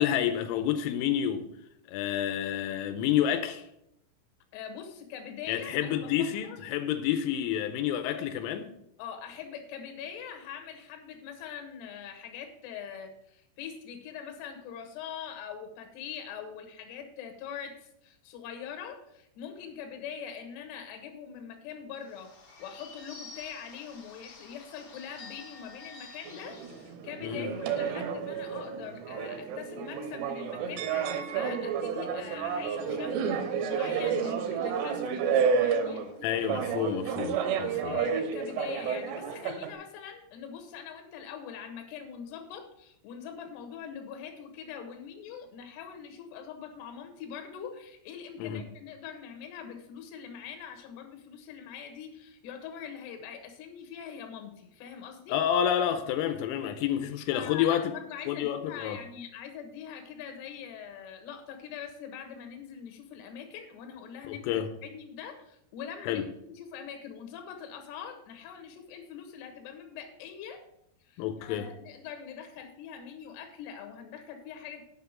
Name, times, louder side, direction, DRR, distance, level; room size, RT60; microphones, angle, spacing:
voice 1, 0.0-1.5 1.9-3.7 5.5-8.7 27.2-27.5 36.2-38.0 48.4-48.6 55.3-57.9 58.3-59.0 64.2-64.7 66.0-66.2 71.2-71.7, left 10 dB, 85° left, 3.2 m, -29 dB
voice 2, 4.5-6.6 9.0-22.3 22.6-36.4 37.8-55.4 56.6-56.7 57.3-70.6 71.0-74.8, left 7 dB, 65° left, 3.0 m, -43 dB
Bird / Bell, 22.0-26.9, left 3 dB, 50° left, 2.2 m, -49 dB
sound 1, 26.3-39.7, right 6 dB, 75° right, 2.5 m, -31 dB
8.0 x 5.8 x 7.3 m
omnidirectional pair, 5.8 m